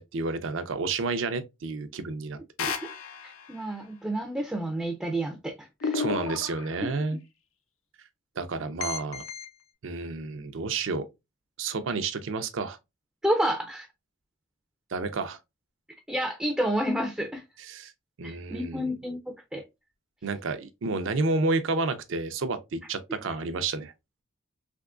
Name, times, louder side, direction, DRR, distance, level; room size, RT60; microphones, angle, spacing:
voice 1, 0.0-2.7 5.9-7.2 8.4-9.2 9.8-11.0 11.6-12.8 14.9-15.4 17.7-17.9 18.2-18.9 20.2-23.9, right 3 dB, 65° right, 0.5 m, -30 dB
sound 1, 2.6-3.6 5.8-7.0 8.8-9.5, left 5 dB, 85° left, 0.5 m, -33 dB
voice 2, 3.2-6.0 13.2-13.9 16.1-17.4 18.2-19.6, right 1 dB, 5° right, 0.3 m, -30 dB
3.5 x 2.9 x 2.4 m
head